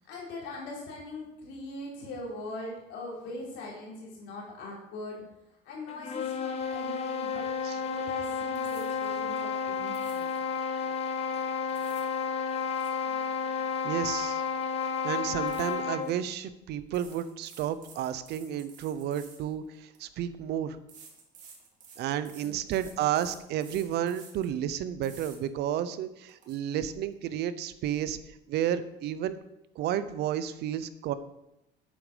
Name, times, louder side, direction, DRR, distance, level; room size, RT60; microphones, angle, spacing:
voice 1, 0.0-5.2 5.6-7.5 7.7-10.3 13.5-13.6 22.2-22.5, left 2 dB, 75° left, -3 dB, 3.9 m, -41 dB
sound 1, 5.9-16.2, left 6 dB, 30° left, 1.2 m, -31 dB
sound 2, 8.5-9.1 9.9-10.4 11.5-12.1 12.5-14.3 14.6-14.9 15.5-16.1 16.9-20.0 20.9-24.5 25.0-25.4 25.8-25.9 26.3-26.6, right 5 dB, 40° right, 2.7 m, -53 dB
voice 2, 13.8-14.4 15.0-20.8 22.0-28.2 28.5-29.4 29.8-31.1, right 10 dB, 60° right, 13 dB, 0.8 m, -31 dB
11.0 x 8.7 x 5.1 m, 0.90 s
cardioid pair, 155°, 19 cm